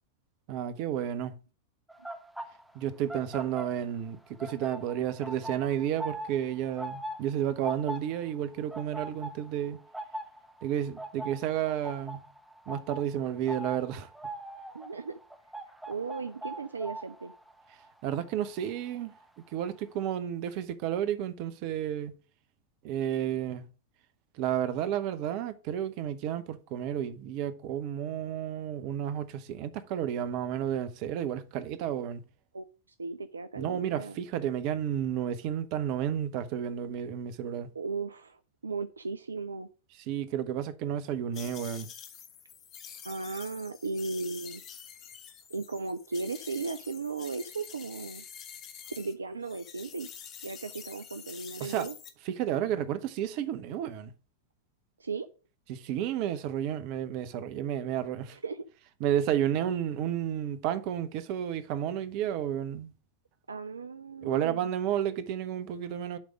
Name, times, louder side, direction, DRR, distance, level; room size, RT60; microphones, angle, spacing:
voice 1, 0.5-1.3 2.7-9.8 10.6-12.2 12.7-14.1 18.0-19.1 19.5-22.1 22.8-23.6 24.4-32.2 33.6-37.7 40.1-41.9 51.6-51.9 52.3-54.1 55.7-58.4 59.0-62.9 64.2-66.2, right 10 dB, 45° right, 0.8 m, -31 dB
sound 1, 1.9-4.1 4.4-19.2 19.5-19.8, right 1 dB, 5° right, 0.9 m, -42 dB
voice 2, 14.7-15.2 15.9-17.3 32.5-32.7 33.0-34.2 37.7-39.7 43.0-44.6 45.5-48.2 49.0-50.1 50.4-51.9 55.0-55.3 58.3-58.7 63.5-64.7, right 4 dB, 75° right, 0.4 m, -36 dB
sound 2, 41.3-49.1 49.4-52.1, left 8 dB, 35° left, 1.0 m, -47 dB
7.3 x 3.5 x 6.3 m
figure-of-eight pair, 90°, 0 cm